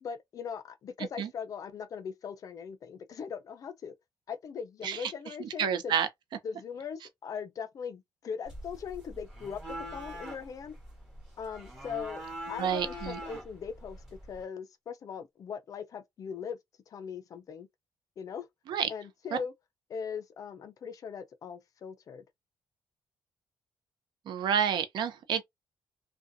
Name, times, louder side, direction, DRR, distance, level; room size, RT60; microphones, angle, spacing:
voice 1, 0.0-3.9 4.3-5.9 6.4-9.6 9.9-10.8 11.4-16.6 16.9-17.7 18.2-18.5 18.9-19.5 19.9-22.2, left 6 dB, 45° left, 0.5 m, -40 dB
voice 2, 5.4-6.1 12.6-13.2 18.7-18.9 19.3-19.4 24.3-25.4, right 8 dB, 65° right, 0.5 m, -29 dB
sound 1, 8.5-14.4, equal, 5° right, 1.1 m, -43 dB
2.5 x 2.3 x 2.5 m
cardioid pair, 160°, 8 cm